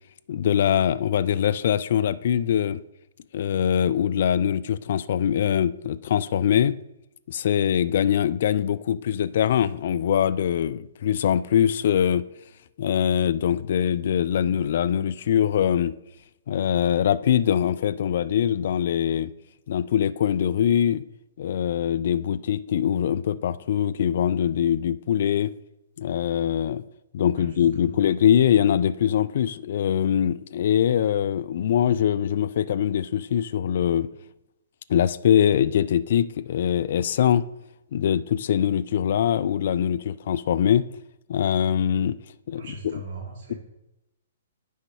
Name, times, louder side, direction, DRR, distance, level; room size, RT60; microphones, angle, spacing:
voice 1, 0.3-2.8 3.3-6.8 7.3-12.2 12.8-15.9 16.5-19.3 19.7-21.0 21.4-25.5 26.0-26.8 27.1-34.1 34.9-37.5 37.9-40.9 41.3-42.2 42.5-43.0, left 9 dB, 50° left, 0.3 m, -23 dB
voice 2, 27.3-28.0 42.5-43.5, right 1 dB, 40° right, 2.6 m, -39 dB
9.8 x 5.4 x 3.4 m
figure-of-eight pair, 120°, 0 cm